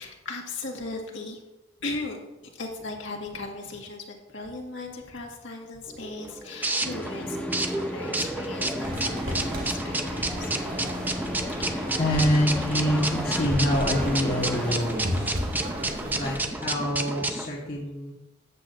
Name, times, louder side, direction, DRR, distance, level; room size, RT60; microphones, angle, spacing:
voice 1, 0.0-1.4 1.8-2.2 2.4-10.5 15.6-15.7 16.0-16.4 17.6-17.8, left 3 dB, 70° left, 0 dB, 1.8 m, -37 dB
sound 1, 5.9-17.5, right 2 dB, 10° right, 0.6 m, -31 dB
sound 2, 6.8-14.7, left 1 dB, 5° left, 1.1 m, -35 dB
sound 3, 8.8-16.4, equal, 50° right, 1.7 m, -34 dB
voice 2, 12.0-15.3 16.1-18.1, equal, 50° left, -4 dB, 1.3 m, -26 dB
13.5 x 8.4 x 2.6 m, 0.99 s
head